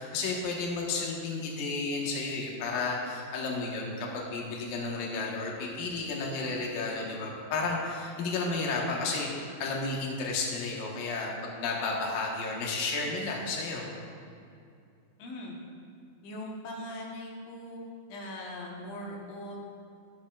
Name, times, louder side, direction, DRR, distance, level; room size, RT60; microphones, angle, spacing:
voice 1, 0.0-13.9, left 3 dB, 65° left, -2 dB, 2.6 m, -32 dB
voice 2, 15.2-15.6 16.2-17.8 18.1-19.6, left 1 dB, 80° left, -2 dB, 3.7 m, -40 dB
21.0 x 7.2 x 2.5 m, 2.4 s
omnidirectional pair, 5.4 m